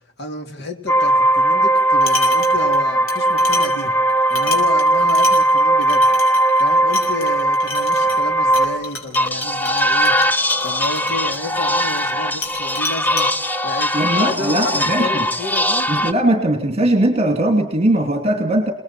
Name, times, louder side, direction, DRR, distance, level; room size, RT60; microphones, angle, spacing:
voice 1, 0.2-4.0 4.3-6.1 6.6-10.1 10.6-13.3 13.6-15.9, left 2 dB, 55° left, 5 dB, 3.2 m, -30 dB
sound 1, 0.9-8.9 9.2-16.1, right 1 dB, 10° left, 0.8 m, -18 dB
sound 2, 1.8-2.8 3.1-12.1 12.4-13.3, left 3 dB, 85° left, 6.6 m, -31 dB
voice 2, 13.9-15.3 15.9-18.7, right 1 dB, 30° right, 5 dB, 2.8 m, -19 dB
30.0 x 20.0 x 4.5 m, 0.69 s
head